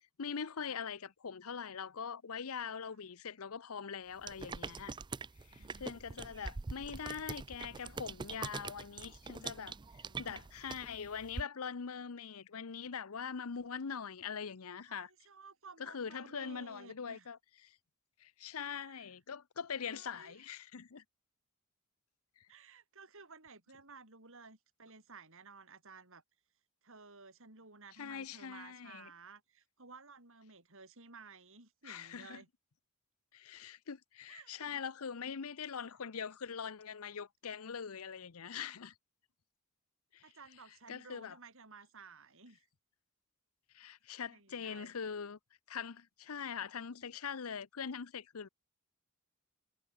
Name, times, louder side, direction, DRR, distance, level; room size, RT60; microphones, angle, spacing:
voice 1, 0.2-4.9 5.5-9.8 10.2-15.1 15.8-17.8 18.2-21.0 22.4-22.5 28.0-29.1 31.8-32.4 33.3-38.9 40.1-40.2 40.9-41.4 43.7-45.4 45.7-48.5, left 6 dB, 70° left, 0.7 m, -43 dB
sound 1, 4.2-11.4, right 4 dB, 20° right, 0.4 m, -44 dB
voice 2, 5.5-6.0 9.5-10.4 14.9-17.3 18.7-19.1 19.9-20.6 22.5-26.2 26.8-32.5 34.3-34.9 38.5-38.8 40.2-42.7 44.3-45.0, right 4 dB, 60° right, 7.1 m, -56 dB
head